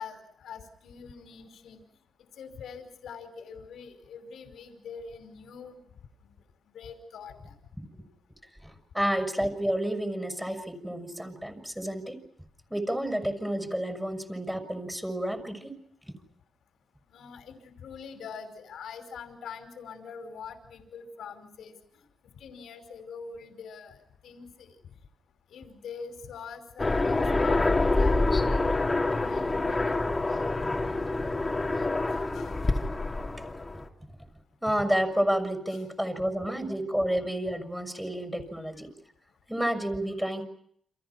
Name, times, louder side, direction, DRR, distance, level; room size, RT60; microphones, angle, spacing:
voice 1, 0.0-1.8 2.4-5.8 6.2-6.3 6.7-7.5 17.1-22.0 22.4-24.8 25.5-28.5 29.1-30.0 32.1-32.6 35.7-35.8 36.1-36.3, left 6 dB, 85° left, 8 dB, 5.3 m, -44 dB
voice 2, 8.6-12.2 12.7-15.7 33.4-33.5 33.7-33.8 34.6-38.9 39.5-40.5, equal, 5° right, 7 dB, 6.0 m, -30 dB
Aircraft, 26.8-33.9, left 2 dB, 20° left, 3.6 m, -26 dB
30.0 x 28.0 x 5.9 m, 0.67 s
cardioid pair, 115°, 0 cm